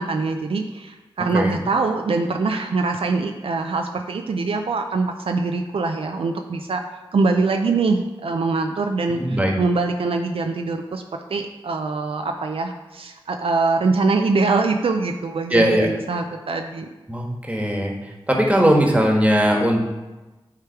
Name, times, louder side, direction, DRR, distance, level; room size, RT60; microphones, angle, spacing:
voice 1, 0.0-11.0 11.3-16.9, right 3 dB, 75° right, 4 dB, 0.4 m, -23 dB
voice 2, 9.1-9.5 15.5-15.9 17.1-17.9 18.3-19.8, equal, 15° right, 0 dB, 1.4 m, -19 dB
8.3 x 3.4 x 4.6 m, 1.1 s
cardioid pair, 40°, 10 cm